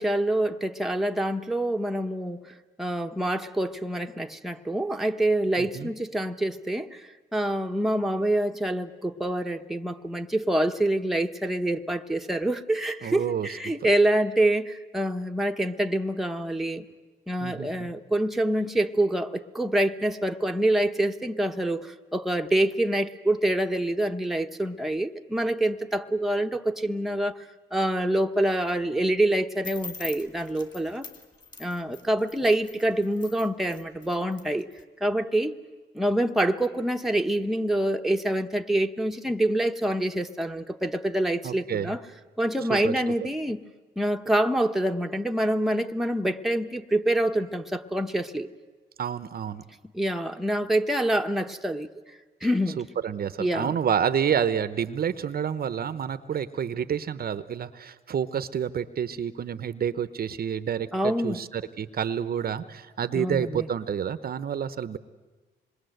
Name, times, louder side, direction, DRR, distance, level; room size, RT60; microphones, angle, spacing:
voice 1, 0.0-16.8 17.3-27.4 27.7-31.1 31.6-34.7 35.0-35.5 35.9-42.0 42.4-43.6 44.0-48.5 49.9-51.9 52.4-52.8 53.4-53.8 60.9-61.4 63.1-63.7, right 1 dB, ahead, 4 dB, 1.0 m, -26 dB
voice 2, 5.6-5.9 13.0-13.5 13.8-13.9 17.4-17.9 41.4-41.9 42.7-42.9 49.0-49.6 52.8-65.0, right 8 dB, 50° right, 13 dB, 0.9 m, -29 dB
sound 1, 29.6-34.8, left 4 dB, 20° left, 2.9 m, -43 dB
26.5 x 21.5 x 7.9 m, 1.3 s
cardioid pair, 90°, 20 cm